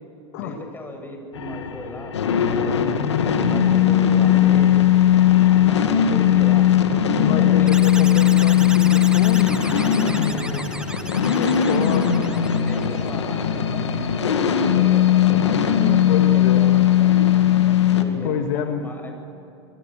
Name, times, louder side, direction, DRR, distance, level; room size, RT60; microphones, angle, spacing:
voice 1, 0.3-4.7 5.5-6.7 7.3-8.3 9.6-10.7 11.1-12.0 12.5-15.1 15.4-17.3 17.9-19.1, left 1 dB, 15° left, 3 dB, 7.3 m, -36 dB
sound 1, 1.3-18.0, left 10 dB, 90° left, 2.2 m, -18 dB
voice 2, 7.2-9.6 11.4-12.2 15.3-15.6 16.1-16.8 18.2-18.9, left 8 dB, 65° left, 5 dB, 1.9 m, -28 dB
sound 2, 7.7-13.1, right 1 dB, 5° right, 1.7 m, -35 dB
27.5 x 22.0 x 7.4 m, 2.9 s
hypercardioid pair, 105°, 14 cm